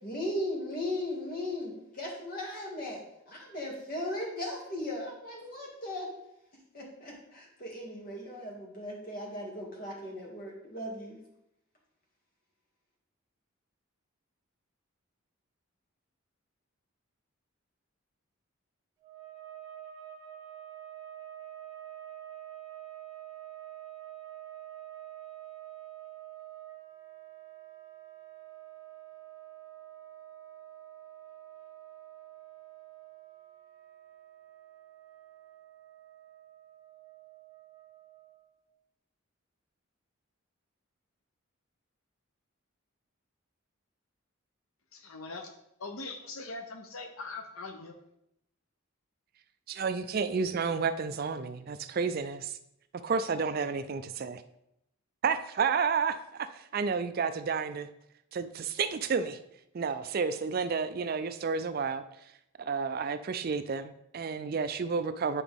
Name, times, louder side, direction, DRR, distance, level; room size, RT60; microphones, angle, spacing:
voice 1, 0.0-6.1 6.7-11.2, left 1 dB, 45° left, 2.2 m, -37 dB
sound 1, 19.0-38.6, right 13 dB, 15° right, 1.6 m, -48 dB
voice 2, 44.9-45.5 45.8-48.0, left 3 dB, 75° left, 0.7 m, -41 dB
voice 3, 49.7-52.6 53.0-54.4 55.2-57.9 58.3-59.4 59.7-62.0 62.6-65.4, right 5 dB, 45° right, 0.4 m, -31 dB
9.8 x 4.9 x 3.5 m
head